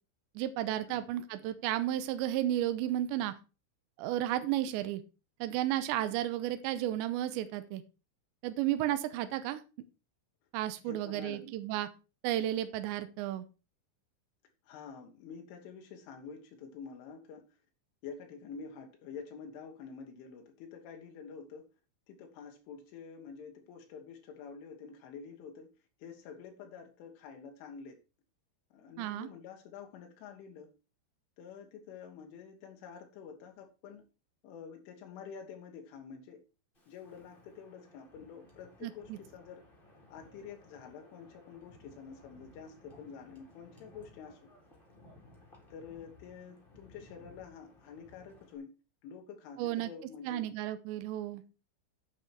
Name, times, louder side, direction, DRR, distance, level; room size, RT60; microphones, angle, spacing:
voice 1, 0.4-3.3 4.0-5.0 5.4-7.8 8.4-9.6 10.5-11.9 12.2-13.5 29.0-29.3 38.8-39.2 49.6-49.9 50.3-51.4, right 13 dB, 80° right, 10 dB, 2.9 m, -33 dB
voice 2, 10.9-11.5 14.6-17.6 18.0-21.7 22.1-25.8 26.0-28.0 28.7-30.7 31.4-34.1 34.4-36.4 36.9-39.6 40.1-44.5 45.7-48.7 49.0-50.5, left 6 dB, 80° left, 3 dB, 3.8 m, -48 dB
Wind, 36.7-48.6, left 2 dB, 10° left, 3.8 m, -59 dB
9.6 x 8.3 x 4.6 m, 0.31 s
omnidirectional pair, 5.6 m